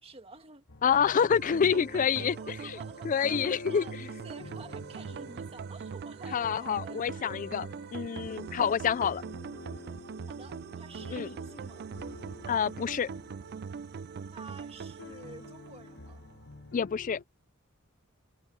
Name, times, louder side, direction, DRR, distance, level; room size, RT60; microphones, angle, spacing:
voice 1, 0.0-0.6 2.2-7.3 10.3-11.9 14.3-16.2, right 3 dB, 25° right, 1.7 m, -50 dB
sound 1, 0.7-17.2, left 3 dB, 55° left, 1.5 m, -49 dB
voice 2, 0.8-2.3 3.0-3.9 6.3-7.7 7.9-9.2 11.1-11.3 12.5-13.1 16.7-17.2, left 7 dB, 40° left, 0.3 m, -27 dB
sound 2, 1.3-16.4, right 5 dB, 50° right, 0.4 m, -42 dB
head